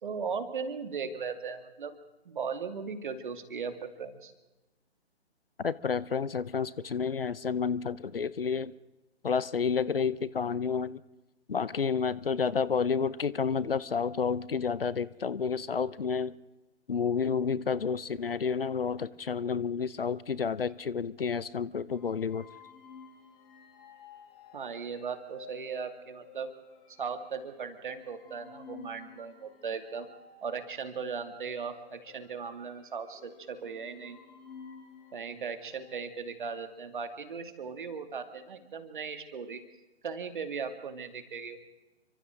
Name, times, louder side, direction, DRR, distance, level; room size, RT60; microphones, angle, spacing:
voice 1, 0.0-1.9 2.2-4.3 24.5-26.5 27.0-30.1 30.4-34.2 35.1-39.6 40.0-41.6, right 5 dB, 45° right, 8 dB, 2.5 m, -37 dB
voice 2, 5.6-8.7 9.2-11.0 11.5-16.4 16.9-22.5, left 6 dB, 55° left, 20 dB, 0.8 m, -30 dB
sound 1, 21.9-35.9, left 5 dB, 25° left, 7.2 m, -53 dB
29.5 x 25.0 x 3.8 m, 1.0 s
figure-of-eight pair, 140°, 34 cm